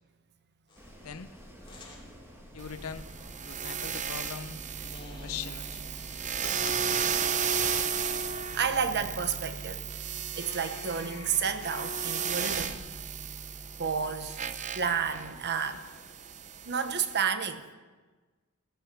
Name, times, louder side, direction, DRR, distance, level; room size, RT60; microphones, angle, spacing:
sound 1, 0.7-0.9 1.6-2.0 4.9-7.5 10.3-12.8, left 2 dB, 25° left, 3.0 m, -49 dB
Wind, 0.7-9.4, equal, 10° right, 2.2 m, -50 dB
voice 1, 1.0-1.4 2.5-3.1 3.4-4.9 5.2-5.9 6.4-6.8, left 7 dB, 80° left, 12 dB, 0.8 m, -41 dB
sound 2, 2.6-17.2, right 6 dB, 35° right, 0.7 m, -34 dB
voice 2, 7.6-9.8 10.4-12.8 13.8-14.5 14.7-15.8 16.6-17.7, right 6 dB, 50° right, 10 dB, 1.0 m, -31 dB
15.0 x 12.5 x 6.9 m, 1.3 s
head